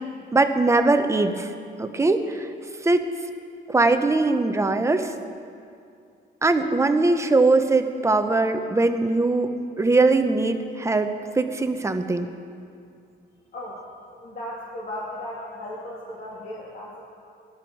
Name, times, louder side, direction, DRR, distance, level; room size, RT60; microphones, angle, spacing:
voice 1, 0.3-1.5 1.8-2.5 2.8-3.1 3.7-5.1 6.4-12.3, right 3 dB, 15° right, 7 dB, 0.7 m, -21 dB
voice 2, 14.2-17.1, left 1 dB, 50° left, -6 dB, 2.4 m, -36 dB
18.5 x 12.0 x 4.6 m, 2.4 s
cardioid pair, 155°, 19 cm